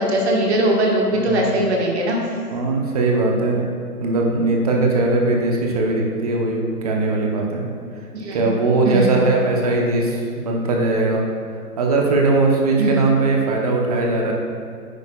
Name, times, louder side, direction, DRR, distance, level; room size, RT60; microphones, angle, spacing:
voice 1, 0.0-2.2 8.1-8.5 8.8-9.2 12.8-13.0, right 1 dB, 45° right, -1 dB, 1.3 m, -20 dB
voice 2, 1.1-1.4 2.5-3.7 4.0-7.6 8.3-11.2 11.8-14.3, right 3 dB, 25° right, -1 dB, 0.8 m, -20 dB
10.0 x 7.9 x 2.3 m, 2.2 s
figure-of-eight pair, 140°, 47 cm